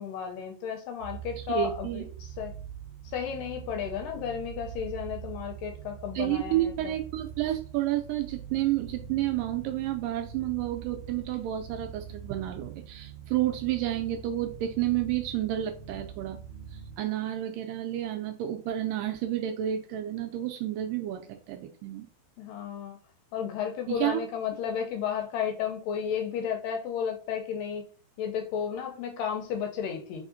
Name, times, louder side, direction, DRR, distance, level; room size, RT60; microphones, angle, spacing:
voice 1, 0.0-2.5 3.0-6.9 22.4-23.0 23.3-27.9 28.2-30.3, left 8 dB, 80° left, 4 dB, 2.2 m, -33 dB
sound 1, 1.0-17.0, right 8 dB, 60° right, 1.4 m, -43 dB
voice 2, 1.5-2.0 6.2-16.4 16.7-22.1 23.9-24.2, right 13 dB, 80° right, 5 dB, 2.0 m, -30 dB
4.8 x 3.6 x 2.6 m, 0.40 s
omnidirectional pair, 4.1 m